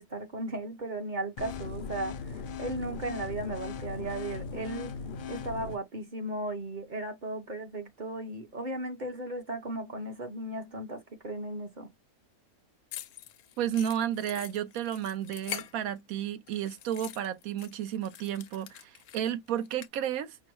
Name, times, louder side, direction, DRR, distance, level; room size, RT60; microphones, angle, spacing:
voice 1, 0.0-4.9 5.3-11.9, right 2 dB, 40° right, 0.9 m, -36 dB
sound 1, 1.4-5.8, left 5 dB, 65° left, 0.5 m, -38 dB
sound 2, 12.9-16.2 16.5-19.9, left 11 dB, 85° left, 1.1 m, -44 dB
voice 2, 13.6-20.4, right 10 dB, 80° right, 1.2 m, -32 dB
5.3 x 2.1 x 4.5 m
omnidirectional pair, 1.5 m